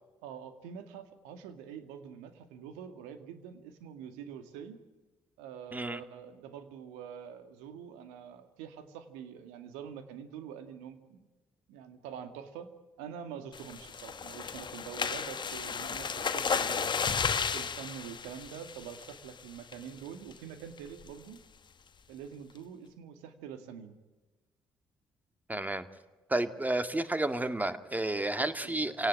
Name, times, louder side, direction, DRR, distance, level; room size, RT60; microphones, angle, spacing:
voice 1, 0.2-4.8 5.4-11.3 11.7-12.7 13.0-16.9 17.5-21.4 22.1-24.0 28.6-28.9, right 8 dB, 80° right, 9 dB, 2.1 m, -45 dB
sound 1, 13.5-19.3 19.7-20.0 20.3-20.4 20.8-21.1, left 6 dB, 40° left, 1.4 m, -33 dB
voice 2, 25.5-25.9 26.3-29.1, right 2 dB, 15° right, 10 dB, 2.1 m, -31 dB
26.0 x 18.5 x 9.9 m, 1.2 s
hypercardioid pair, 50°, 12 cm